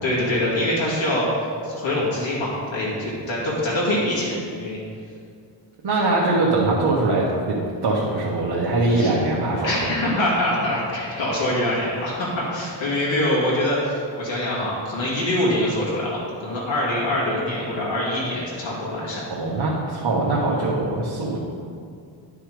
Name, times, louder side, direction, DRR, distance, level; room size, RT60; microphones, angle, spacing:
voice 1, 0.0-1.3 1.6-4.8 8.9-9.1 9.6-19.2, left 1 dB, 90° left, -7 dB, 2.5 m, -24 dB
voice 2, 5.8-9.7 19.3-21.4, right 2 dB, 65° right, -5 dB, 1.5 m, -22 dB
11.0 x 5.7 x 5.1 m, 2.3 s
wide cardioid pair, 115°, 45 cm